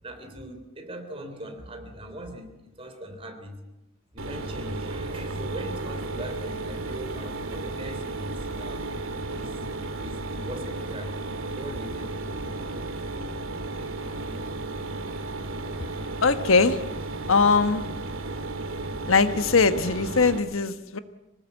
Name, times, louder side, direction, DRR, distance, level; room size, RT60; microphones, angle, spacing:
voice 1, 0.0-3.7 4.1-11.3 11.5-12.6, right 1 dB, 25° right, 5 dB, 3.5 m, -40 dB
Mechanisms, 4.2-20.4, right 2 dB, 75° right, 2.5 m, -34 dB
voice 2, 16.2-16.8 17.3-17.8 19.0-21.0, left 4 dB, 75° left, 10 dB, 1.3 m, -21 dB
25.5 x 19.0 x 8.1 m, 0.93 s
head